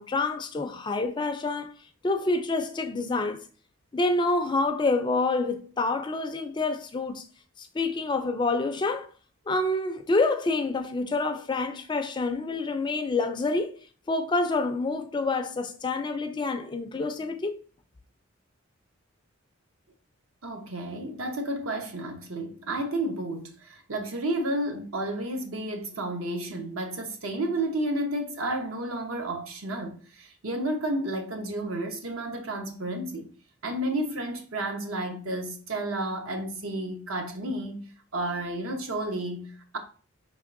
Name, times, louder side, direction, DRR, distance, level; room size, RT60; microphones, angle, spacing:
voice 1, 0.0-1.7 2.0-3.4 3.9-7.2 7.6-9.1 9.5-13.8 14.1-17.6, left 3 dB, 20° left, 0.3 m, -27 dB
voice 2, 20.4-33.3 33.6-39.8, right 1 dB, 70° right, 0.9 m, -31 dB
5.2 x 3.5 x 2.5 m
head